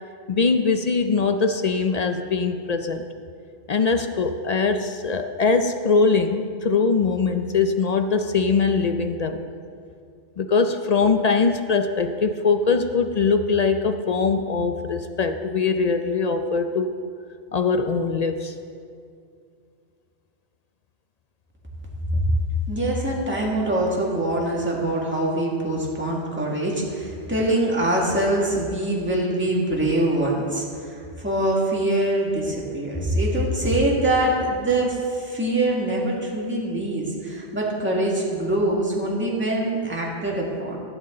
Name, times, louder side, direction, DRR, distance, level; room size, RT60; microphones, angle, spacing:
voice 1, 0.3-3.0 3.7-9.4 10.4-16.9 17.5-18.5, left 4 dB, 55° left, 7 dB, 0.4 m, -22 dB
voice 2, 22.7-40.8, right 1 dB, 10° right, -4 dB, 1.9 m, -24 dB
15.5 x 8.2 x 3.8 m, 2.3 s
omnidirectional pair, 1.2 m